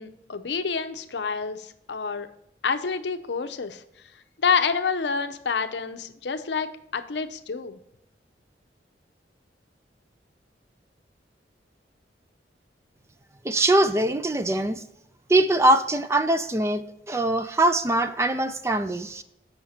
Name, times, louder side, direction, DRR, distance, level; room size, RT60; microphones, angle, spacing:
voice 1, 0.0-2.3 2.6-3.8 4.4-7.8, left 5 dB, 75° left, 9 dB, 0.6 m, -28 dB
voice 2, 13.4-14.8 15.3-19.2, right 1 dB, 15° right, 10 dB, 0.4 m, -22 dB
7.3 x 5.6 x 4.1 m, 0.81 s
head